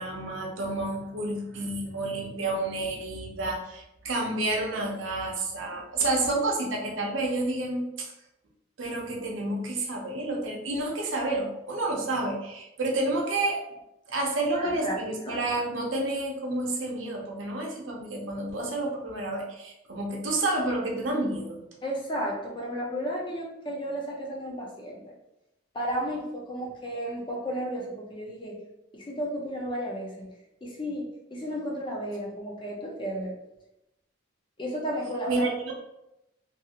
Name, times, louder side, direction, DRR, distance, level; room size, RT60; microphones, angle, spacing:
voice 1, 0.0-8.1 8.8-13.6 14.1-21.6 35.3-35.7, right 2 dB, 80° right, -1 dB, 0.7 m, -30 dB
voice 2, 14.5-15.4 21.8-25.1 25.7-28.6 28.9-30.3 30.6-33.3 34.6-35.5, equal, 25° left, -2 dB, 0.6 m, -33 dB
2.6 x 2.5 x 2.8 m, 0.90 s
head